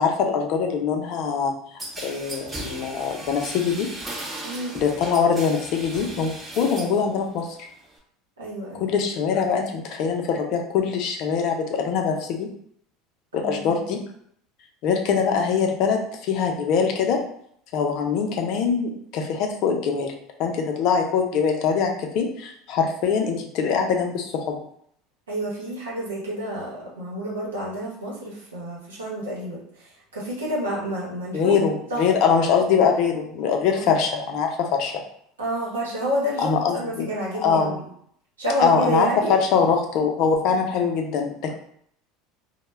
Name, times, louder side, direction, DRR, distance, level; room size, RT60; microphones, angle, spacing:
voice 1, 0.0-1.6 2.0-3.9 4.7-7.7 8.7-12.5 13.3-14.0 14.8-17.2 17.7-20.1 20.4-24.6 31.3-34.9 36.4-37.1 37.3-37.8 38.6-41.5, left 6 dB, 55° left, 3 dB, 0.5 m, -23 dB
sound 1, 1.8-7.0 7.4-8.0, right 1 dB, 20° right, 0.8 m, -37 dB
voice 2, 4.4-4.8 8.4-8.9 13.3-13.7 25.3-31.6 31.9-32.0 33.6-33.9 35.4-37.8 38.4-39.3, equal, 85° right, -5 dB, 0.9 m, -29 dB
2.2 x 2.1 x 3.1 m, 0.67 s
hypercardioid pair, 75°, 0 cm